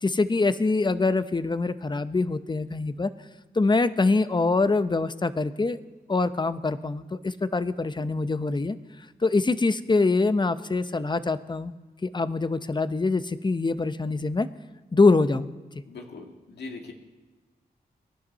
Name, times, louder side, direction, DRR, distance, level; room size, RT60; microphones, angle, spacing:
voice 1, 0.0-3.1 3.5-5.8 6.1-8.8 9.2-11.7 12.0-14.5 14.9-15.5, left 3 dB, 25° left, 12 dB, 0.8 m, -24 dB
voice 2, 15.9-16.9, left 3 dB, 90° left, 2 dB, 1.8 m, -40 dB
24.0 x 11.0 x 4.1 m, 1.2 s
cardioid pair, 60°, 17 cm